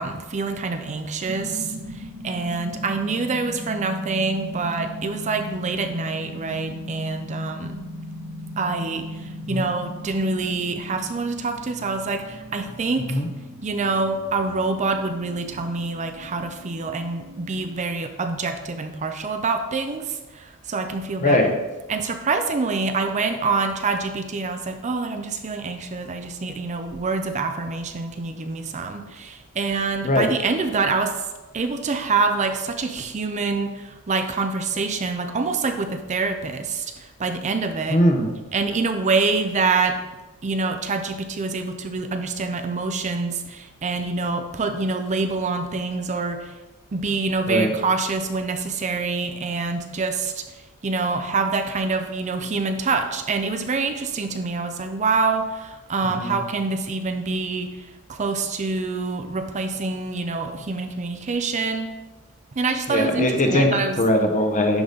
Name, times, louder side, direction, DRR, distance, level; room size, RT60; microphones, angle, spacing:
voice 1, 0.0-7.8 8.6-13.2 13.6-21.5 21.9-31.3 31.5-38.0 38.5-40.0 40.4-46.6 46.9-50.6 50.8-61.9 62.6-64.0, right 4 dB, 30° right, 6 dB, 0.5 m, -26 dB
sound 1, 1.2-17.7, equal, 60° right, 1.6 m, -38 dB
voice 2, 37.9-38.3 47.5-47.7 56.2-56.4 62.9-64.8, left 1 dB, 35° left, 4 dB, 0.9 m, -20 dB
10.5 x 4.0 x 3.8 m, 1.2 s
head